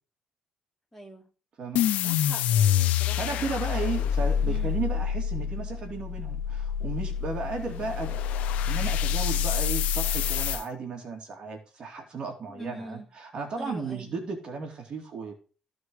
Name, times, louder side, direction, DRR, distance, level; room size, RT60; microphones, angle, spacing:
voice 1, 0.9-1.3 2.0-3.6 4.4-4.8 5.4-5.5 12.5-13.1 13.6-14.1, right 1 dB, 10° left, 2.9 m, -43 dB
sound 1, 1.7-10.6, left 9 dB, 80° left, 0.6 m, -27 dB
voice 2, 3.2-8.2 8.7-15.3, right 4 dB, 40° right, 2.7 m, -34 dB
14.5 x 5.1 x 4.7 m
cardioid pair, 135°, 2 cm